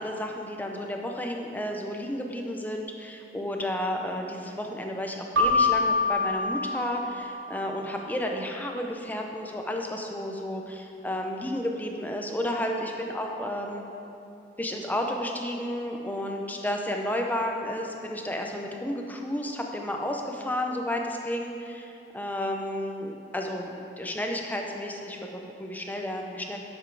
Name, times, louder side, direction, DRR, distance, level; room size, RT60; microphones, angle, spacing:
voice 1, 0.0-13.8 14.6-26.6, left 1 dB, 10° left, 2 dB, 0.8 m, -32 dB
Keyboard (musical), 5.4-7.9, left 3 dB, 80° right, 1.2 m, -26 dB
11.0 x 7.3 x 4.9 m, 2.6 s
head